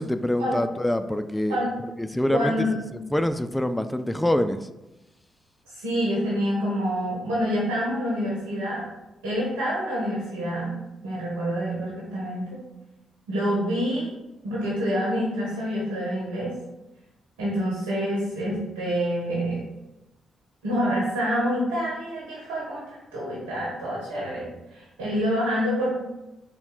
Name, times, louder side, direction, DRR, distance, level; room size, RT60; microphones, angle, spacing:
voice 1, 0.0-1.6 2.0-2.7 3.1-4.6, left 1 dB, 10° left, 10 dB, 0.3 m, -25 dB
voice 2, 2.3-2.7 5.7-8.8 9.2-10.8 11.0-12.6 13.3-14.1 14.4-16.5 17.4-19.6 20.6-25.9, equal, 85° right, -5 dB, 1.0 m, -27 dB
4.1 x 2.2 x 3.8 m, 1.0 s
hypercardioid pair, 45°, 0 cm